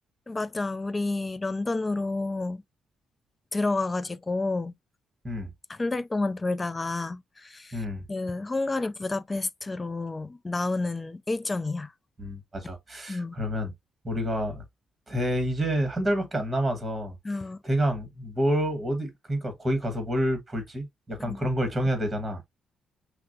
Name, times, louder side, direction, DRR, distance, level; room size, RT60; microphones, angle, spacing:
voice 1, 0.3-2.6 3.5-4.7 5.7-11.9 13.1-13.4 17.2-17.6 21.2-21.5, left 3 dB, 20° left, 0.4 m, -30 dB
voice 2, 7.7-8.0 12.2-13.7 14.0-14.6 15.1-17.2 17.6-22.4, equal, 20° right, 1.5 m, -28 dB
5.8 x 2.1 x 2.7 m
cardioid pair, 90°, 0 cm